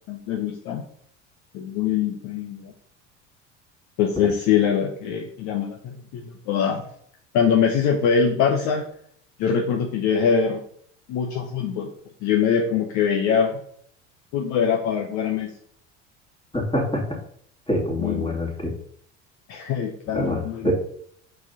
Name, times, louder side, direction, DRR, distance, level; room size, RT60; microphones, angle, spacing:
voice 1, 0.1-0.8 1.5-2.7 4.0-6.8 7.3-8.8 9.4-10.6 11.1-11.9 12.2-13.6 14.3-15.5 18.0-18.4 19.5-20.7, left 7 dB, 50° left, 2 dB, 1.0 m, -23 dB
voice 2, 16.5-17.2 17.7-18.7 20.1-20.7, left 1 dB, 15° left, -1 dB, 2.6 m, -25 dB
6.5 x 4.8 x 4.0 m, 0.63 s
figure-of-eight pair, 65°, 37 cm